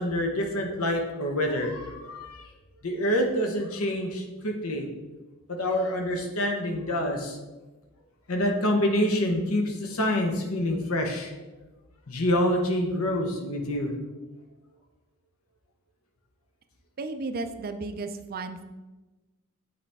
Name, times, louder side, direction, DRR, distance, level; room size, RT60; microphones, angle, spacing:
voice 1, 0.0-2.4 2.8-4.9 5.5-7.4 8.3-11.3 12.1-13.9, left 1 dB, 70° left, 3 dB, 1.0 m, -27 dB
voice 2, 17.0-18.6, right 3 dB, 45° right, 9 dB, 0.4 m, -34 dB
8.2 x 4.3 x 3.5 m, 1.2 s
head